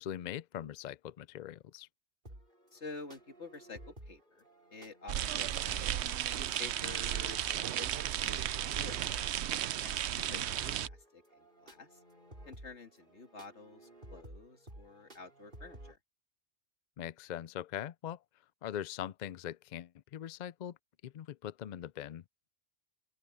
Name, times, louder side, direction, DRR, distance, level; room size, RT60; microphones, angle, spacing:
voice 1, 0.0-1.9 10.3-10.4 17.0-18.2 18.6-20.8 21.0-22.2, left 11 dB, 60° left, 0.5 m, -41 dB
sound 1, 2.2-16.0, right 1 dB, 45° right, 5.6 m, -54 dB
voice 2, 2.7-9.4 9.8-12.0 12.5-16.0, left 3 dB, 75° left, 2.5 m, -50 dB
sound 2, 5.1-10.9, right 11 dB, 75° right, 0.9 m, -34 dB
open air
omnidirectional pair, 1.2 m